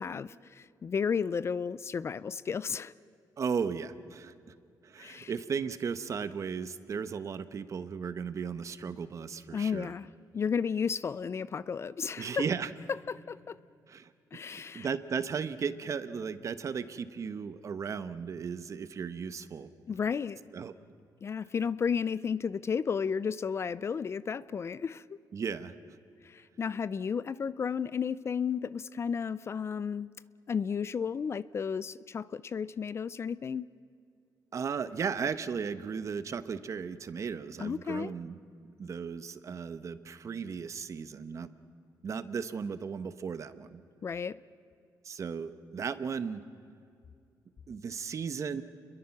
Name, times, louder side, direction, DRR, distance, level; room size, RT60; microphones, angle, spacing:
voice 1, 0.0-2.9 5.0-5.3 9.5-10.1 10.3-12.4 13.1-13.6 14.3-14.9 19.9-20.4 21.2-25.2 26.2-30.1 30.5-33.7 37.6-38.1 44.0-44.4, left 6 dB, 40° left, 17 dB, 0.5 m, -33 dB
voice 2, 3.4-4.3 4.8-9.9 12.2-12.7 13.9-14.1 14.7-19.7 20.5-20.8 25.3-25.7 34.5-41.5 42.0-43.8 45.0-46.4 47.7-48.6, right 6 dB, 45° right, 12 dB, 1.0 m, -35 dB
29.5 x 22.0 x 5.9 m, 2.4 s
cardioid pair, 120°, 7 cm